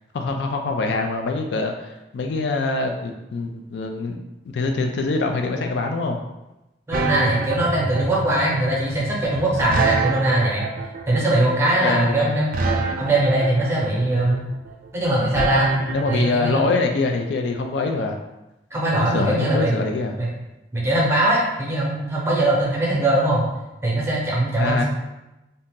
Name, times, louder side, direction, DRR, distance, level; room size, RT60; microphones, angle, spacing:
voice 1, 0.1-4.2 4.5-6.2 11.8-12.4 15.9-18.2 18.9-20.2 24.6-24.8, left 3 dB, 65° left, 4 dB, 0.3 m, -24 dB
voice 2, 6.9-10.7 11.1-14.4 14.9-15.7 16.1-16.6 18.7-19.7 20.2-20.3 20.7-23.4 23.8-24.8, right 1 dB, 15° right, -4 dB, 0.7 m, -21 dB
sound 1, 6.9-16.5, right 4 dB, 45° right, 0.3 m, -26 dB
2.7 x 2.6 x 3.6 m, 0.97 s
head